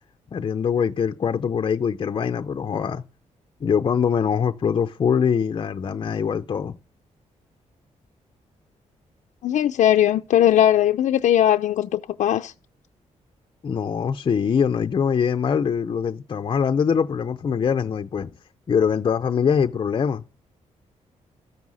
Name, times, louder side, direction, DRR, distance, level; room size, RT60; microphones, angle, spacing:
voice 1, 0.3-3.0 3.6-6.7 13.6-18.3 18.7-20.2, left 7 dB, 40° left, 0.6 m, -23 dB
voice 2, 9.4-12.5, left 11 dB, 85° left, 0.6 m, -19 dB
13.5 x 9.5 x 6.3 m
wide cardioid pair, 145°, 13 cm